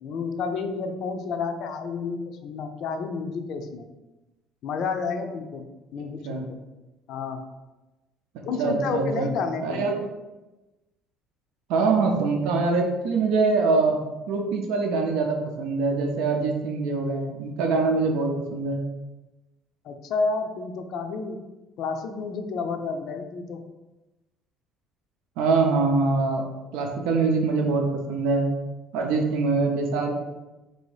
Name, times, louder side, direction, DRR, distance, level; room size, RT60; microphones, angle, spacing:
voice 1, 0.0-3.9 4.6-5.7 5.9-6.6 7.1-7.4 8.4-9.9 19.8-21.4 21.8-23.6, left 4 dB, 50° left, 6 dB, 0.4 m, -30 dB
voice 2, 8.6-9.3 9.6-10.0 11.7-14.0 14.3-18.8 25.4-26.4 26.7-28.4 28.9-30.1, right 3 dB, 80° right, 2 dB, 0.6 m, -24 dB
4.0 x 2.7 x 4.8 m, 1.1 s
cardioid pair, 175°, 0 cm